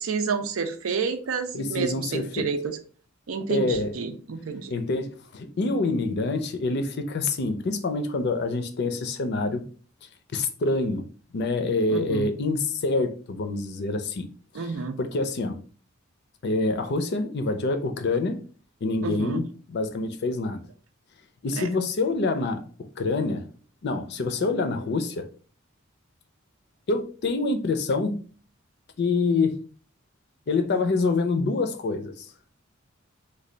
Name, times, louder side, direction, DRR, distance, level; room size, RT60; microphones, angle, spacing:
voice 1, 0.0-2.8 3.3-4.7 11.9-12.3 14.5-15.0 19.0-19.4 21.6-21.7, right 5 dB, 90° right, 0.5 m, -29 dB
voice 2, 1.5-2.5 3.5-3.9 4.7-9.6 10.3-11.1 11.3-14.3 14.6-14.7 15.0-15.6 16.4-18.4 18.8-20.6 21.4-22.6 23.0-23.5 23.8-25.3 26.9-28.2 29.0-29.6 30.5-32.3, left 3 dB, 55° left, 0.5 m, -26 dB
3.2 x 2.3 x 3.8 m
head